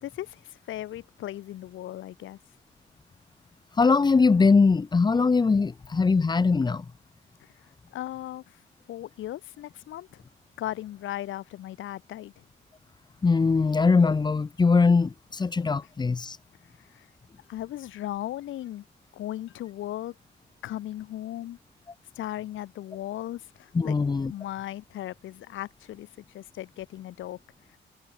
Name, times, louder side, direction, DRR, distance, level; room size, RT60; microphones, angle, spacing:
voice 1, 0.0-2.4 7.4-7.5 7.9-8.6 8.9-10.2 10.6-12.4 16.8-17.1 17.5-18.8 19.1-20.1 20.6-21.6 22.2-23.9 24.3-26.1 26.3-27.4, left 13 dB, 80° left, 2.3 m, -37 dB
voice 2, 3.8-6.8 13.2-16.4 23.7-24.3, left 4 dB, 20° left, 0.6 m, -21 dB
cardioid pair, 90°, 20 cm